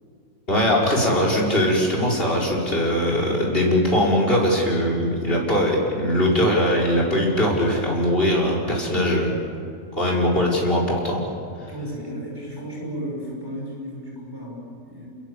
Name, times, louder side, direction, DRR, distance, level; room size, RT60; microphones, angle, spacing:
voice 1, 0.5-9.3 10.0-11.2, equal, 35° left, -2 dB, 5.8 m, -21 dB
voice 2, 11.7-15.1, equal, 15° right, -4 dB, 6.5 m, -34 dB
29.0 x 21.0 x 8.5 m, 2.4 s
omnidirectional pair, 1.6 m